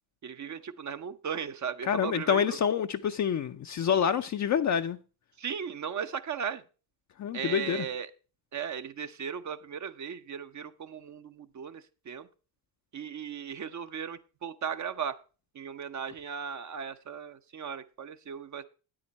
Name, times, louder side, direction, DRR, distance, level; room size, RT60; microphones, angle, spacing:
voice 1, 0.2-2.6 5.4-6.6 7.3-8.1 8.5-12.3 12.9-15.2 15.5-18.6, right 7 dB, 40° right, 0.7 m, -37 dB
voice 2, 1.8-5.0 7.2-7.9, left 8 dB, 40° left, 0.5 m, -27 dB
8.9 x 8.8 x 4.1 m
supercardioid pair, 65°, 45 cm